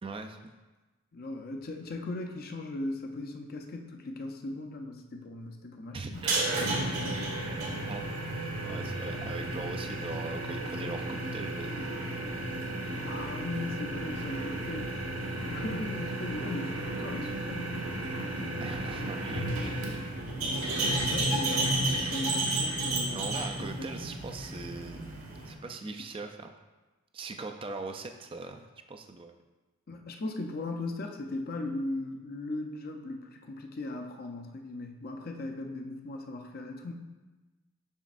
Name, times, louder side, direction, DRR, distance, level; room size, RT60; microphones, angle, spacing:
voice 1, 0.0-0.5 5.9-7.1 7.9-8.4 8.6-12.1 18.6-19.5 19.9-20.0 23.1-25.0 25.5-26.5 27.1-29.4, right 3 dB, 25° right, 5 dB, 0.3 m, -41 dB
voice 2, 1.1-6.3 13.0-14.9 15.5-18.6 19.6-19.8 21.0-21.8 22.1-23.5 23.8-23.9 29.9-36.9, left 2 dB, 45° left, 3 dB, 0.5 m, -38 dB
sound 1, 6.1-25.5, right 2 dB, 85° right, 1.5 m, -33 dB
7.1 x 6.2 x 2.5 m, 1.2 s
head